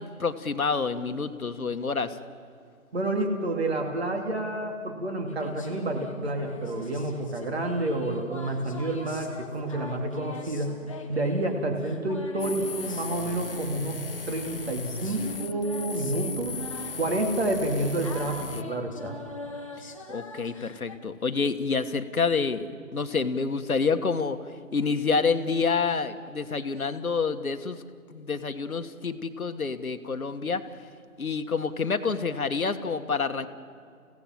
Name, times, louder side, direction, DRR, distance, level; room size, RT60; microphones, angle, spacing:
voice 1, 0.0-2.2 20.1-24.4 24.7-27.8 28.1-30.6 31.2-33.5, left 5 dB, 75° left, 8 dB, 1.5 m, -28 dB
voice 2, 2.9-10.8 11.1-16.6 17.0-19.2, right 2 dB, 45° right, 3 dB, 2.6 m, -29 dB
sound 1, 5.3-21.0, left 2 dB, 25° left, 1.1 m, -43 dB
sound 2, 12.4-18.6, left 5 dB, 40° left, 0.8 m, -37 dB
30.0 x 16.5 x 7.6 m, 2.3 s
figure-of-eight pair, 165°, 43 cm